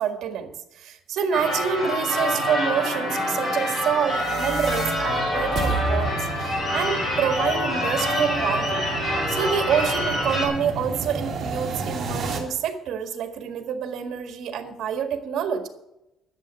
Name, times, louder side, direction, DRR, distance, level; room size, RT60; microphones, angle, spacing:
voice 1, 0.0-8.8 9.3-15.7, right 7 dB, 60° right, 7 dB, 1.7 m, -27 dB
Church bell / Car / Alarm, 1.3-10.5, left 1 dB, 35° left, 5.2 m, -26 dB
sound 1, 3.9-12.4, right 3 dB, 35° right, 2.4 m, -31 dB
11.5 x 7.0 x 8.4 m, 0.89 s
cardioid pair, 175°, 0 cm